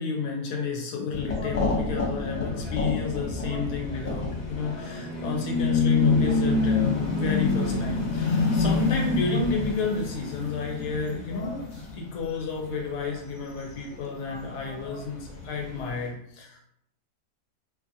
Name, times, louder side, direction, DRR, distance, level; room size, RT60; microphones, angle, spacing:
voice 1, 0.0-11.7 11.9-16.7, left 4 dB, 85° left, 0 dB, 1.1 m, -31 dB
sound 1, 1.1-12.4 12.6-13.4 13.7-16.0, left 4 dB, 60° left, 0.4 m, -27 dB
2.6 x 2.6 x 2.6 m, 0.73 s
omnidirectional pair, 1.7 m